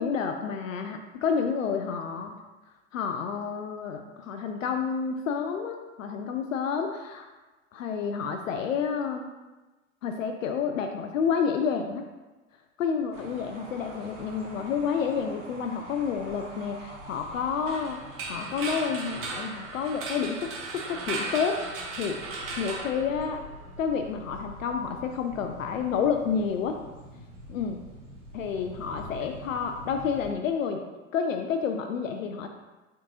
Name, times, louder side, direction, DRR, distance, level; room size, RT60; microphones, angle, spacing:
voice 1, 0.0-2.4 2.9-7.3 7.7-9.3 10.0-12.0 12.8-18.0 18.3-21.6 22.0-23.4 23.8-26.8 27.5-27.8 28.3-30.8 31.1-32.5, left 6 dB, 75° left, 5 dB, 0.5 m, -29 dB
sound 1, 13.1-30.3, right 1 dB, 65° right, 1.2 m, -46 dB
sound 2, 17.7-23.7, right 3 dB, 35° right, 0.9 m, -36 dB
4.4 x 3.7 x 2.8 m, 1.2 s
figure-of-eight pair, 95°, 40 cm